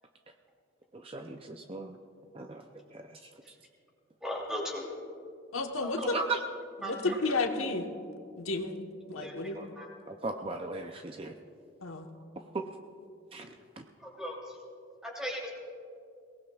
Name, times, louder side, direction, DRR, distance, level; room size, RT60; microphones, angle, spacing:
voice 1, 0.9-1.9 2.3-2.6 2.9-3.0 6.0-6.4 7.0-7.1 9.5-9.7 10.1-11.3 12.5-12.7 13.3-13.5 13.8-13.9, right 3 dB, 25° right, 5 dB, 0.5 m, -36 dB
voice 2, 4.2-4.8 5.8-5.9 6.8-7.1 9.2-9.3 9.8-9.9 14.2-14.3 15.0-15.5, equal, 5° right, -2 dB, 3.0 m, -36 dB
voice 3, 5.5-6.2 6.8-7.8 8.4-8.8 9.1-9.6 11.8-12.1, left 3 dB, 90° left, 3 dB, 1.2 m, -31 dB
22.5 x 18.5 x 2.4 m, 2.4 s
head